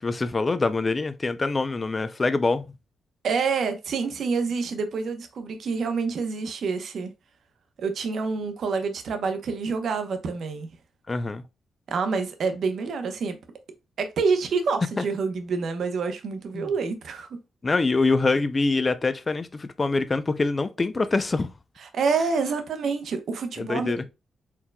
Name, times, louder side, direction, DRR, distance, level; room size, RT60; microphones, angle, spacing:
voice 1, 0.0-2.7 11.1-11.4 15.0-15.1 16.5-16.7 17.6-21.5 23.6-24.0, left 3 dB, 30° left, 0.5 m, -24 dB
voice 2, 3.2-7.1 7.8-10.7 11.9-13.4 14.0-17.4 21.8-24.0, right 5 dB, 70° right, 0.8 m, -27 dB
4.5 x 3.7 x 2.2 m
cardioid pair, 90°, 0 cm